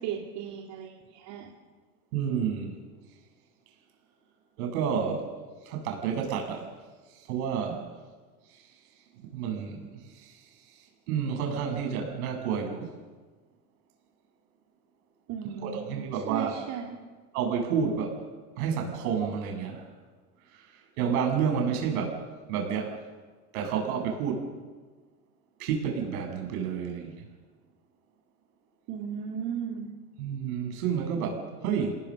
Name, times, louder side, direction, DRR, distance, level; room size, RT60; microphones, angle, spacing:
voice 1, 0.0-1.5 15.3-15.9 16.3-17.0 28.9-29.9, right 8 dB, 55° right, 0 dB, 3.2 m, -36 dB
voice 2, 2.1-2.7 4.6-5.3 5.7-6.7 7.3-7.8 9.3-10.3 11.1-12.9 15.5-16.6 17.3-18.2 18.6-19.9 20.5-20.7 21.0-22.2 22.5-23.0 23.5-24.5 25.6-27.2 30.2-31.9, right 7 dB, 70° right, 3 dB, 7.8 m, -30 dB
28.0 x 19.0 x 6.7 m, 1.4 s
hypercardioid pair, 90°, 45 cm